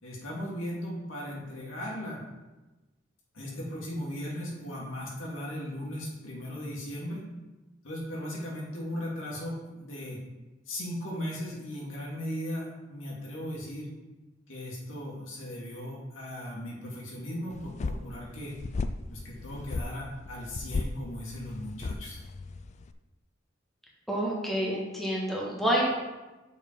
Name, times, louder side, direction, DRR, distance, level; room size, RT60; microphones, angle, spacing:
voice 1, 0.0-2.2 3.3-7.2 7.8-10.2 10.7-13.9 14.5-18.6 19.1-22.2, left 1 dB, 85° left, -4 dB, 2.3 m, -37 dB
sound 1, 17.5-22.9, left 3 dB, 35° left, 0.3 m, -36 dB
voice 2, 24.1-25.9, equal, ahead, -4 dB, 1.4 m, -28 dB
6.7 x 4.9 x 5.2 m, 1.1 s
head